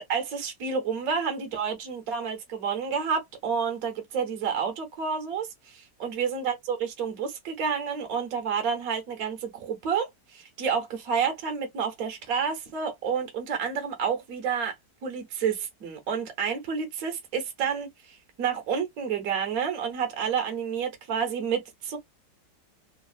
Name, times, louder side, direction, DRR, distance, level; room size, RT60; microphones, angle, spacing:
voice 1, 0.0-14.7 15.0-22.0, right 6 dB, 65° right, 1.1 m, -29 dB
3.2 x 2.3 x 2.3 m
omnidirectional pair, 1.8 m